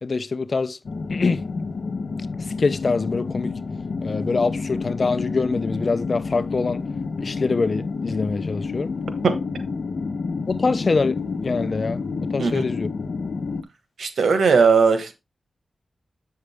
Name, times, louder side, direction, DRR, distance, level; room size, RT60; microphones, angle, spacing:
voice 1, 0.0-0.8 1.1-1.4 2.6-3.5 4.0-6.8 7.2-8.9 10.5-12.0 12.3-12.9, left 4 dB, 55° left, 0.7 m, -24 dB
sound 1, 0.8-13.6, left 4 dB, 75° left, 1.0 m, -29 dB
voice 2, 14.0-15.1, right 5 dB, 85° right, 1.4 m, -18 dB
8.1 x 6.5 x 3.5 m
cardioid pair, 60°, 0 cm